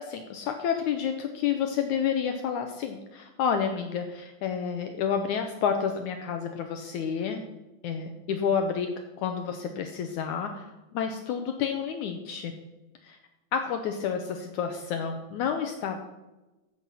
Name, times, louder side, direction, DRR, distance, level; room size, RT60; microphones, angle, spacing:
voice 1, 0.1-7.4 7.8-8.9 9.2-12.5 13.0-13.2 13.5-16.0, left 7 dB, 70° left, 5 dB, 2.1 m, -30 dB
15.0 x 7.9 x 5.6 m, 1.1 s
omnidirectional pair, 3.8 m